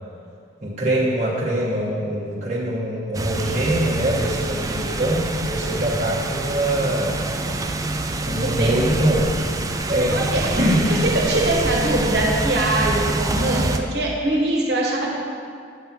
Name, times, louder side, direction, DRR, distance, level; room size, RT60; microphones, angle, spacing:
voice 1, 0.6-7.2 8.2-9.3 9.9-10.2 10.5-10.9, right 1 dB, 35° right, -7 dB, 1.1 m, -23 dB
sound 1, 3.1-13.8, right 2 dB, 20° right, 0.3 m, -26 dB
voice 2, 8.4-8.7 10.1-10.5 10.9-15.2, right 1 dB, 55° right, -1 dB, 1.3 m, -22 dB
8.3 x 5.5 x 5.9 m, 2.2 s
head